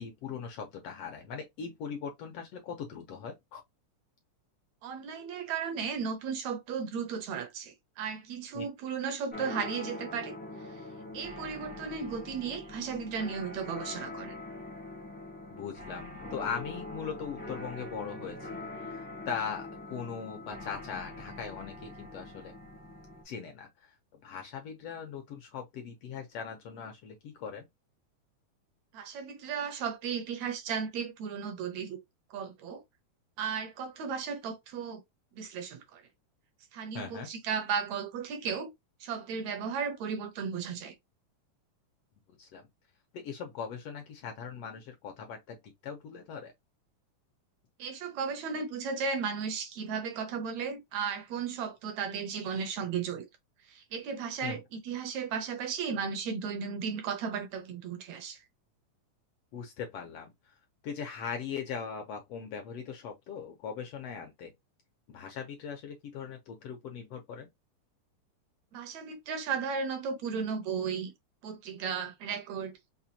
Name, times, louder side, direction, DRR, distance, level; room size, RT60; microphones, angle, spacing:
voice 1, 0.0-3.6 8.5-8.7 15.5-22.5 23.2-27.7 36.9-37.3 42.3-42.6 43.1-46.5 54.4-54.6 59.5-60.3 60.8-64.5 65.1-67.5, left 6 dB, 70° left, 1.5 m, -40 dB
voice 2, 4.8-10.4 11.1-14.4 28.9-32.0 32.3-32.8 33.4-35.0 35.4-36.0 36.7-38.7 39.0-40.9 47.8-53.3 53.7-58.4 68.7-71.1 71.4-72.7, right 6 dB, 70° right, 2.1 m, -35 dB
sound 1, 9.3-23.2, left 2 dB, 10° left, 0.6 m, -43 dB
6.0 x 2.2 x 2.8 m
omnidirectional pair, 3.6 m